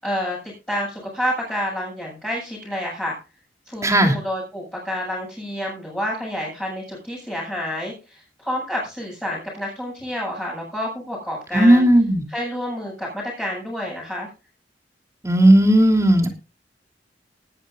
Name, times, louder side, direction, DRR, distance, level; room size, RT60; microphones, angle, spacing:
voice 1, 0.0-3.2 3.7-11.9 12.3-14.3, equal, 5° left, -6 dB, 7.8 m, -29 dB
voice 2, 3.8-4.1 11.5-12.2 15.2-16.3, right 1 dB, 15° right, 2 dB, 3.1 m, -15 dB
20.5 x 10.5 x 2.7 m, 0.32 s
head